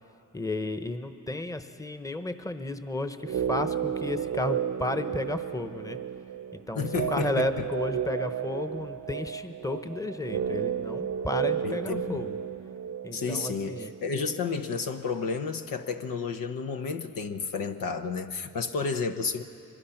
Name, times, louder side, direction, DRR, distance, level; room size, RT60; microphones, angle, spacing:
voice 1, 0.3-6.0 6.7-12.4 13.0-13.9, left 1 dB, 10° left, 9 dB, 1.0 m, -33 dB
sound 1, 3.2-15.3 15.6-15.7, right 8 dB, 75° right, 0.8 m, -33 dB
voice 2, 6.7-7.7 11.6-12.2 13.1-19.4, left 5 dB, 85° left, 7 dB, 1.0 m, -31 dB
24.0 x 21.0 x 5.9 m, 2.6 s
cardioid pair, 75°, 33 cm